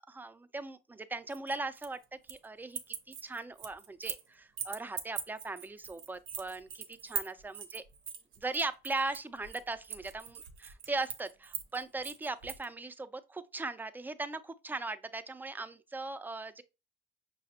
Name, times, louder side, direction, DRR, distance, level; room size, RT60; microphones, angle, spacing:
voice 1, 0.0-2.0 2.3-2.8 3.1-7.8 8.4-16.6, right 3 dB, 10° right, 0.3 m, -39 dB
sound 1, 1.3-2.5 2.7-4.3 4.6-12.7, right 7 dB, 85° right, 0.6 m, -41 dB
5.7 x 2.0 x 2.8 m
cardioid pair, 90°, 20 cm